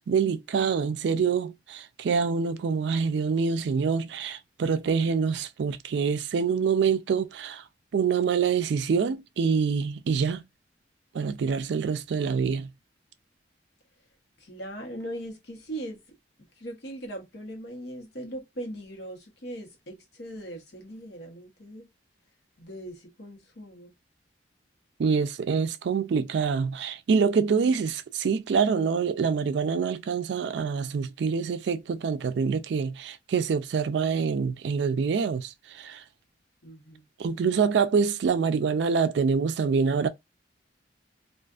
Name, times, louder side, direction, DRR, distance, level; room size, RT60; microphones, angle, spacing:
voice 1, 0.0-7.6 7.9-10.4 11.1-12.7 25.0-36.0 37.2-40.1, right 5 dB, 70° right, 0.3 m, -26 dB
voice 2, 14.4-16.0 16.6-21.9 22.6-23.9 36.6-37.0, right 1 dB, 65° left, 1.0 m, -40 dB
2.4 x 2.4 x 2.3 m
head